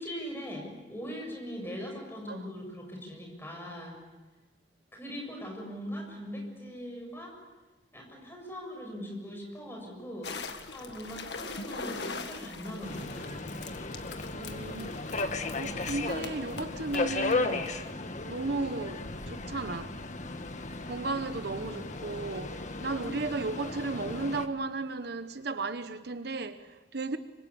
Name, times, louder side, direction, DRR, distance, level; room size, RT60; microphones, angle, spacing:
voice 1, 0.0-4.0 4.9-7.3 7.9-10.3 10.7-13.5, equal, 15° left, 7.0 m, -40 dB
sound 1, 10.2-17.9, left 4 dB, 65° left, 1.9 m, -42 dB
Subway metro underground, 12.8-24.5, left 3 dB, 40° left, 1.5 m, -35 dB
voice 2, 14.3-15.3 15.6-17.7 18.2-19.9 20.8-27.2, right 3 dB, 60° right, 1.0 m, -35 dB
25.5 x 25.0 x 8.6 m
head